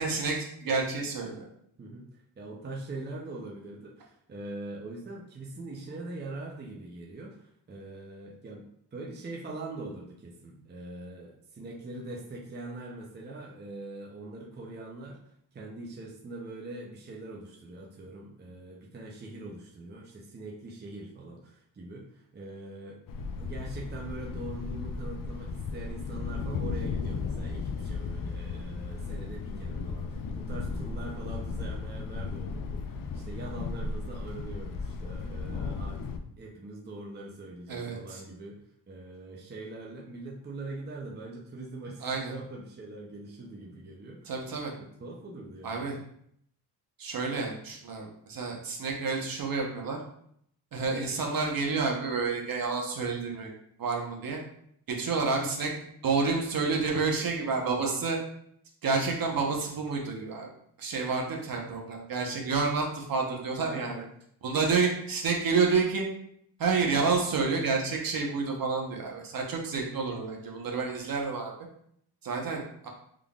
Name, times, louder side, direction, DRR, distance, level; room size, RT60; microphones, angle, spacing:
voice 1, 0.0-1.5 37.7-38.2 42.0-42.3 44.3-44.7 45.6-46.0 47.0-50.0 50.7-53.5 53.8-54.4 54.9-55.7 56.0-58.2 58.8-60.5 60.8-64.0 64.4-66.1 66.6-71.5 72.2-72.9, right 4 dB, 55° right, 0 dB, 1.0 m, -29 dB
voice 2, 1.8-15.2 15.5-23.0 23.4-36.0 36.4-38.6 38.9-44.3 45.0-46.0 50.8-51.2 61.0-61.2 63.6-64.1, right 2 dB, 25° right, -1 dB, 0.7 m, -42 dB
Thunder, 23.1-36.2, left 4 dB, 55° left, 0.5 m, -35 dB
3.6 x 3.5 x 2.4 m, 0.69 s
cardioid pair, 100°, 41 cm